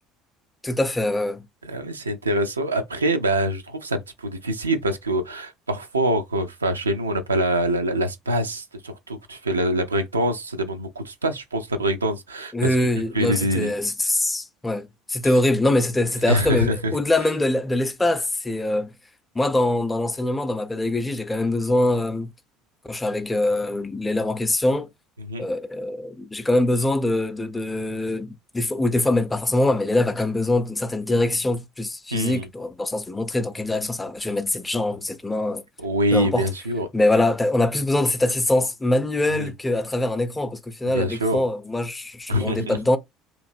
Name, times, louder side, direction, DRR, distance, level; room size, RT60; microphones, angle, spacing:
voice 1, 0.6-1.5 12.5-18.9 19.4-22.3 22.8-24.9 25.4-35.6 36.1-36.5 36.9-43.0, left 1 dB, 15° left, 0.4 m, -23 dB
voice 2, 1.6-12.8 13.1-13.7 16.2-16.9 25.2-25.5 32.1-32.5 35.8-36.9 39.3-39.5 40.8-41.4 42.3-42.8, right 1 dB, 80° right, 0.4 m, -25 dB
2.9 x 2.5 x 2.5 m
figure-of-eight pair, 60°, 0 cm